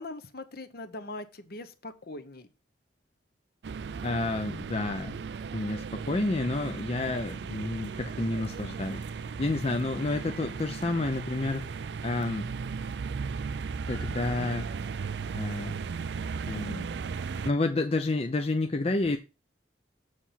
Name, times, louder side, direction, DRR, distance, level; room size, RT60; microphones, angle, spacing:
voice 1, 0.0-2.5 10.0-10.1, left 2 dB, 55° left, 1.0 m, -41 dB
sound 1, 3.6-17.5, right 5 dB, 70° right, 0.4 m, -36 dB
voice 2, 4.0-5.1 5.5-9.0 9.4-11.7 12.0-12.5 13.9-14.7 15.3-15.7 16.5-16.9 17.4-19.2, left 2 dB, 35° left, 0.6 m, -30 dB
6.9 x 4.8 x 5.7 m
head